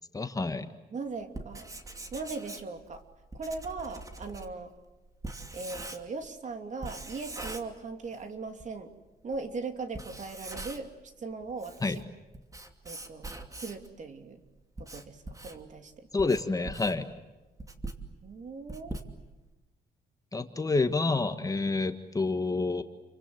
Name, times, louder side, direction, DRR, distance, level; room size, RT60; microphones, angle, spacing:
voice 1, 0.1-0.7 11.8-12.0 16.1-17.0 20.3-22.8, left 3 dB, 20° left, 8 dB, 1.6 m, -28 dB
voice 2, 0.9-1.7 2.1-3.0 3.3-4.7 5.5-8.9 9.2-10.9 11.2-12.0 12.8-14.4 14.8-16.1 18.2-19.0, right 4 dB, 45° right, 7 dB, 3.1 m, -39 dB
Writing, 1.2-6.3 6.8-8.3 8.6-8.7 9.3-9.4 9.8-11.0 11.4-13.9 14.5-19.5, right 2 dB, 20° right, 2.7 m, -42 dB
30.0 x 24.5 x 7.9 m, 1.1 s
cardioid pair, 115°, 18 cm